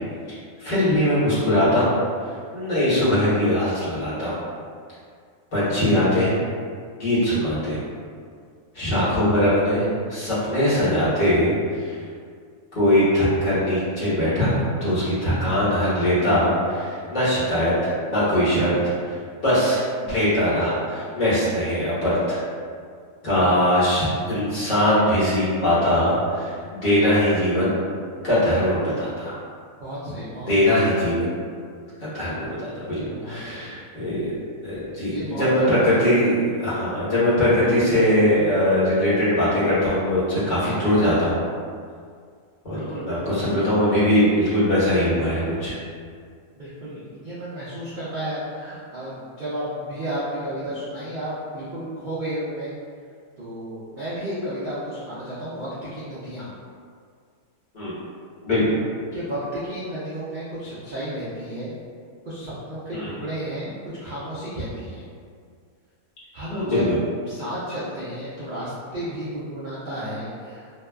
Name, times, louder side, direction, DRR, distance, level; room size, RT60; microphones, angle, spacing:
voice 1, 0.6-1.9 2.2-4.4 5.5-6.4 7.0-7.8 8.7-12.0 12.7-18.8 19.1-22.4 23.2-27.8 28.2-29.3 30.5-31.3 32.0-34.4 34.6-41.4 42.6-45.8 57.7-58.0 58.4-58.7 62.9-63.2 66.5-67.0, left 1 dB, 35° left, -12 dB, 1.1 m, -21 dB
voice 2, 29.8-30.8 33.1-33.7 35.0-35.5 42.7-43.7 46.6-52.7 53.4-56.5 59.1-61.7 62.3-63.7 64.0-65.0 66.3-66.9 67.3-70.7, right 1 dB, 85° right, -10 dB, 0.4 m, -32 dB
2.7 x 2.2 x 2.2 m, 2.2 s
omnidirectional pair, 1.5 m